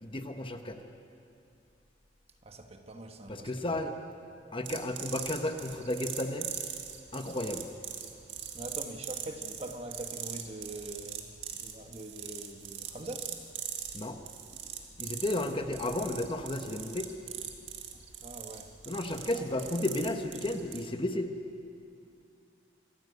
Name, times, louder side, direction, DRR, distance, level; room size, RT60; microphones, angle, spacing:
voice 1, 0.0-0.8 3.3-3.9 4.5-6.5 7.1-7.7 13.9-14.2 15.0-17.1 18.9-21.3, left 1 dB, 30° left, 6 dB, 1.1 m, -33 dB
voice 2, 2.4-3.8 8.5-11.3 11.6-13.3 17.9-18.7 19.3-19.5, right 1 dB, 35° right, 5 dB, 1.4 m, -43 dB
sound 1, 4.6-20.9, right 9 dB, 75° right, 1.9 m, -42 dB
25.5 x 14.5 x 8.1 m, 2.5 s
head